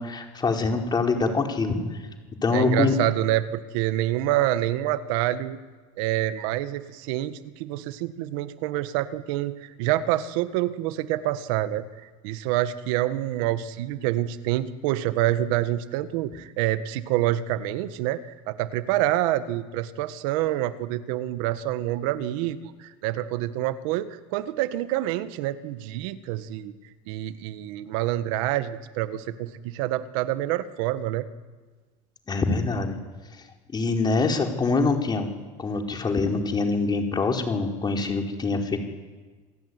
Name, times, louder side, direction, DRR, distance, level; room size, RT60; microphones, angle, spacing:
voice 1, 0.0-1.8 2.4-2.9 32.3-33.0 33.7-35.3 35.6-38.8, left 3 dB, 25° left, 2 dB, 4.8 m, -24 dB
voice 2, 2.5-5.6 6.0-11.9 12.2-26.7 27.1-31.3, right 14 dB, 80° right, 11 dB, 1.7 m, -27 dB
28.5 x 19.0 x 9.7 m, 1.4 s
supercardioid pair, 115°, 17 cm